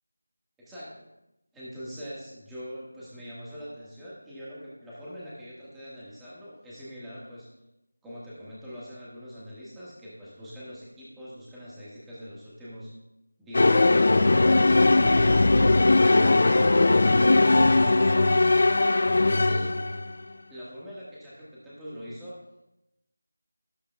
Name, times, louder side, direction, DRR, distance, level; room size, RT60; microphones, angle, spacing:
voice 1, 0.6-1.1 1.5-7.5 8.0-12.9 19.1-19.7 20.5-22.4, equal, 5° right, -9 dB, 1.5 m, -43 dB
sound 1, 13.5-20.1, left 2 dB, 45° left, 0.5 m, -19 dB
13.0 x 11.5 x 2.3 m, 0.93 s
figure-of-eight pair, 175°, 0 cm